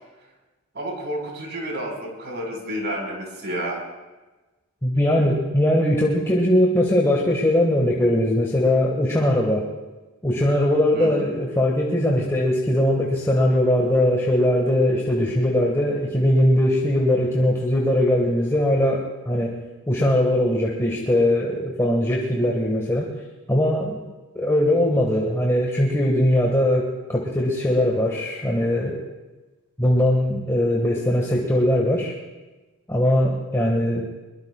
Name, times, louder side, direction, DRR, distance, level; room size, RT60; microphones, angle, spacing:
voice 1, 0.7-3.8 10.9-11.3, right 1 dB, 55° right, 0 dB, 5.1 m, -30 dB
voice 2, 4.8-9.6 10.2-19.6 19.9-23.1 23.5-24.0 24.3-29.0 29.8-32.1 32.9-34.0, left 1 dB, 15° left, -2 dB, 1.7 m, -20 dB
24.0 x 22.5 x 2.4 m, 1.2 s
head